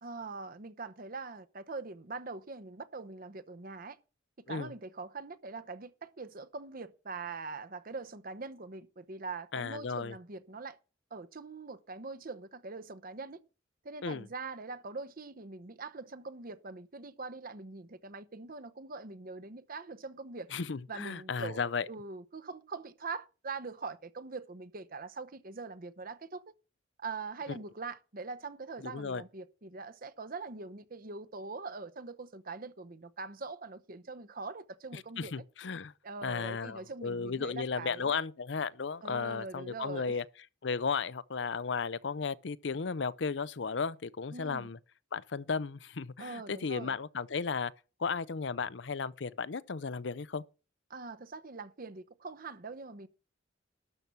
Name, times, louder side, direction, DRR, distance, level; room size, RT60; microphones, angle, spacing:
voice 1, 0.0-4.0 4.5-10.8 11.1-13.4 13.8-20.5 20.9-26.4 27.0-35.3 36.0-38.1 39.0-40.2 44.3-44.7 46.2-47.0 50.9-53.1, right 4 dB, 50° right, 0.9 m, -43 dB
voice 2, 9.5-10.1 14.0-14.3 20.5-21.9 27.5-27.6 28.8-29.2 34.9-35.9 36.2-40.2 40.6-44.8 45.1-47.7 48.0-50.4, left 5 dB, 65° left, 0.6 m, -35 dB
12.5 x 5.9 x 6.9 m
head